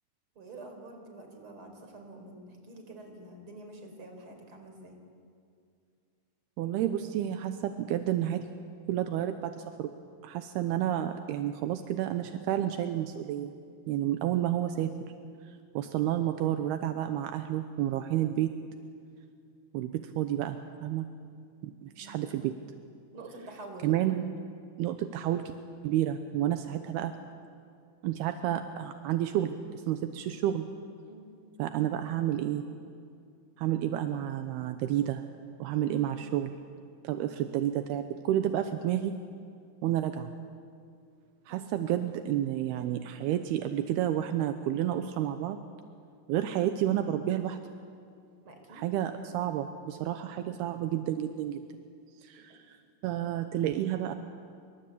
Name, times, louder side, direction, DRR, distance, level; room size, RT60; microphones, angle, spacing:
voice 1, 0.3-5.0 22.0-22.2 23.1-23.9 31.1-31.3 41.5-41.7 48.4-48.9, right 2 dB, 30° right, 4 dB, 5.0 m, -47 dB
voice 2, 6.6-8.5 8.9-9.9 10.2-13.6 13.9-15.0 15.5-18.5 19.7-21.1 21.6-22.5 23.8-24.2 24.8-25.5 25.8-27.2 28.0-29.6 29.9-30.6 31.6-32.7 33.6-35.2 35.6-36.6 37.0-39.2 39.8-40.3 41.5-45.6 46.3-47.6 48.7-51.6 52.2-54.1, right 11 dB, 80° right, 8 dB, 2.8 m, -30 dB
27.5 x 26.0 x 8.5 m, 2.4 s
omnidirectional pair, 4.7 m